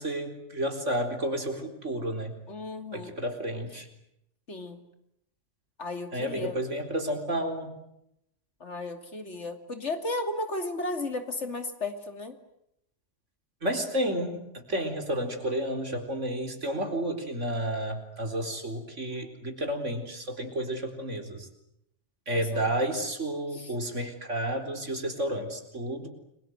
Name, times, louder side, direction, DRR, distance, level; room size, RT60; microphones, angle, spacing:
voice 1, 0.0-2.3 2.9-3.9 6.1-7.7 13.6-21.5 22.3-26.1, right 1 dB, 80° right, 6 dB, 4.6 m, -31 dB
voice 2, 2.5-3.2 4.5-4.8 5.8-6.6 8.6-12.4 22.3-22.7 23.5-23.7, left 2 dB, 70° left, 7 dB, 3.2 m, -34 dB
30.0 x 23.5 x 8.0 m, 0.79 s
omnidirectional pair, 1.2 m